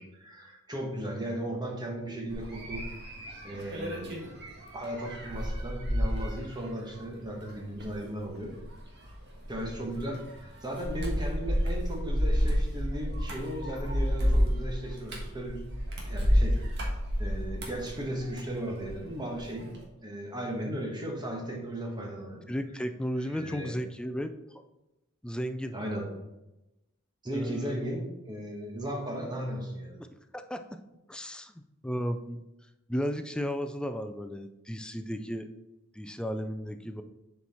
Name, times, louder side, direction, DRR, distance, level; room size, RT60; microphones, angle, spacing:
voice 1, 0.0-2.8 3.4-4.3 4.7-8.5 9.5-15.6 16.0-16.8 17.2-19.7 20.0-22.5 23.2-23.7 25.7-26.1 27.2-30.0, right 1 dB, 20° right, 0 dB, 1.3 m, -36 dB
sound 1, 2.3-19.0 19.3-19.8, equal, 55° right, 1.6 m, -31 dB
voice 2, 22.5-24.6 25.2-25.7 27.3-27.8 30.0-30.1 30.3-30.6 31.1-32.4 32.9-35.5 35.9-37.0, equal, 5° left, 8 dB, 0.4 m, -34 dB
7.1 x 4.6 x 4.3 m, 0.97 s
head